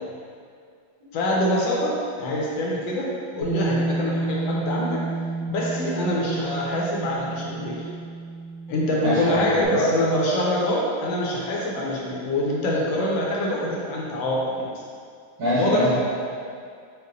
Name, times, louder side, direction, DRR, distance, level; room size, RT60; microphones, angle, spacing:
voice 1, 1.1-1.9 2.2-5.0 5.5-7.9 8.7-14.8 15.6-15.9, left 1 dB, 80° left, -4 dB, 1.3 m, -25 dB
Bass guitar, 3.4-9.7, right 3 dB, 55° right, 0.8 m, -30 dB
voice 2, 9.0-9.9 15.4-16.0, left 1 dB, 75° right, -11 dB, 1.6 m, -24 dB
6.4 x 2.4 x 2.6 m, 2.2 s
omnidirectional pair, 2.2 m